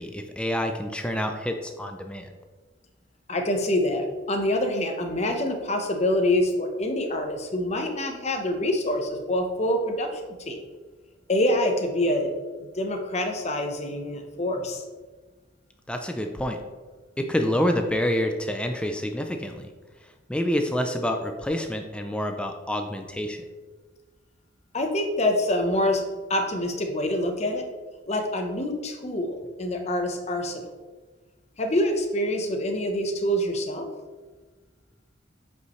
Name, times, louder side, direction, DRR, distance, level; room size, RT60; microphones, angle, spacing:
voice 1, 0.0-2.3 15.9-16.6 17.2-19.7 20.3-23.4, equal, 5° left, 4 dB, 0.4 m, -27 dB
voice 2, 3.3-10.2 10.5-10.6 11.3-12.3 12.8-14.8 24.7-26.0 26.3-27.6 28.1-30.6 31.6-33.9, left 1 dB, 35° left, 4 dB, 0.8 m, -26 dB
8.0 x 5.4 x 3.1 m, 1.3 s
head